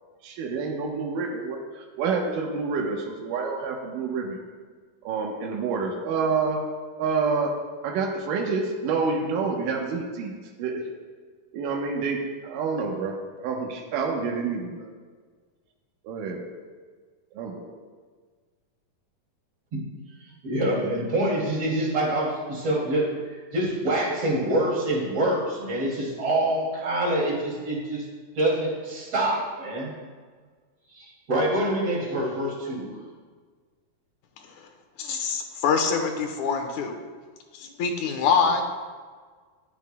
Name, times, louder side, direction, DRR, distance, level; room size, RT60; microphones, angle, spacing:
voice 1, 0.2-4.4 5.0-6.6 7.0-7.5 7.8-10.8 11.5-14.9 16.0-16.6 17.4-17.7, right 4 dB, 85° right, 1 dB, 2.6 m, -28 dB
voice 2, 20.4-28.0 28.4-29.9 30.9-32.9, right 1 dB, 45° right, -4 dB, 3.5 m, -26 dB
voice 3, 35.0-36.9 37.5-38.6, left 5 dB, 70° left, 3 dB, 2.2 m, -24 dB
20.5 x 7.4 x 2.2 m, 1.5 s
omnidirectional pair, 3.7 m